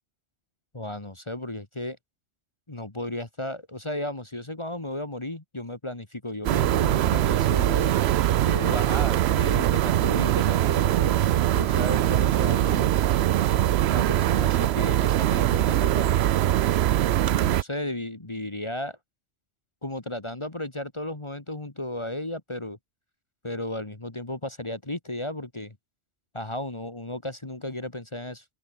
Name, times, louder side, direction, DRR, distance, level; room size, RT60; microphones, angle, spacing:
voice 1, 0.7-2.0 2.7-7.9 8.4-11.1 11.5-12.9 13.5-16.2 17.3-19.0 19.8-22.8 23.4-25.8 26.3-28.4, left 1 dB, 25° left, 1.9 m, -34 dB
sound 1, 6.4-17.6, right 12 dB, 70° right, 0.8 m, -22 dB
open air
omnidirectional pair, 1.2 m